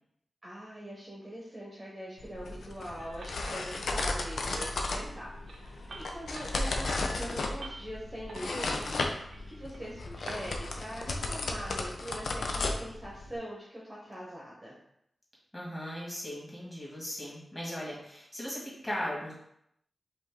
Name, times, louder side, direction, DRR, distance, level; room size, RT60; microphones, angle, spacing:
voice 1, 0.4-14.8, equal, 15° right, -5 dB, 0.9 m, -43 dB
sound 1, 2.2-13.4, left 2 dB, 85° left, 0.5 m, -35 dB
sound 2, 3.0-10.5, right 2 dB, 80° right, 0.6 m, -48 dB
voice 2, 15.5-19.3, equal, 10° left, -6 dB, 1.8 m, -38 dB
5.1 x 2.6 x 3.7 m, 0.74 s
wide cardioid pair, 140°, 0 cm